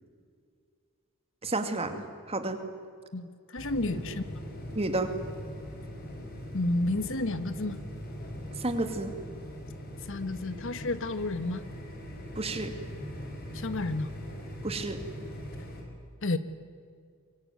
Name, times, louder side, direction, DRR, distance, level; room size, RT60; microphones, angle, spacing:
voice 1, 1.4-2.6 3.9-4.0 4.7-5.1 8.6-9.1 12.4-12.7 14.6-15.0, right 2 dB, 25° right, 7 dB, 2.4 m, -31 dB
voice 2, 3.1-4.2 6.5-7.8 10.0-11.6 13.5-14.1 16.2-16.4, left 2 dB, 60° left, 12 dB, 1.3 m, -31 dB
sound 1, 3.6-15.8, equal, 45° left, 6.0 m, -41 dB
25.0 x 23.0 x 9.4 m, 2.2 s
head